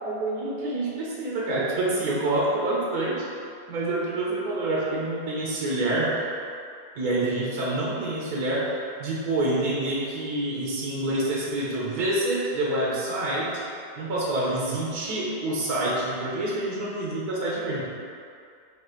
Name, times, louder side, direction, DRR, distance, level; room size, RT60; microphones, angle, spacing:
voice 1, 0.0-3.2 3.7-6.2 6.9-13.5 14.0-17.8, right 2 dB, 75° right, -5 dB, 1.6 m, -27 dB
7.7 x 2.6 x 5.1 m, 2.4 s
omnidirectional pair, 1.6 m